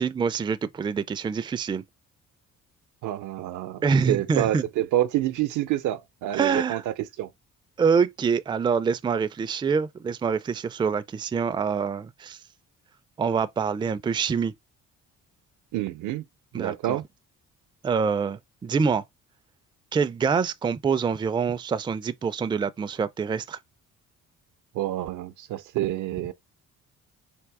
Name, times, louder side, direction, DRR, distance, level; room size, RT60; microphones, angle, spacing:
voice 1, 0.0-1.8 3.8-4.6 6.3-6.8 7.8-12.4 13.2-14.5 16.5-17.0 17.8-19.0 19.9-23.6, right 6 dB, 15° right, 0.3 m, -25 dB
voice 2, 3.0-7.3 15.7-16.2 16.5-17.0 24.7-26.3, right 13 dB, 80° right, 0.6 m, -28 dB
3.5 x 2.7 x 4.6 m
cardioid pair, 90°, 30 cm